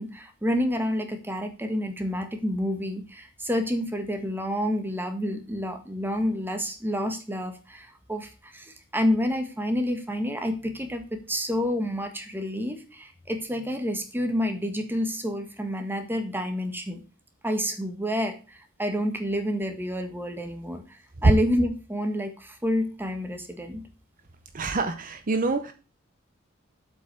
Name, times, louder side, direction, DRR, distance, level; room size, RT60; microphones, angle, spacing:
voice 1, 0.0-17.0 17.4-23.8, equal, 10° right, 5 dB, 1.5 m, -29 dB
voice 2, 24.5-25.7, right 3 dB, 40° right, 8 dB, 0.7 m, -27 dB
8.0 x 5.3 x 6.8 m, 0.34 s
head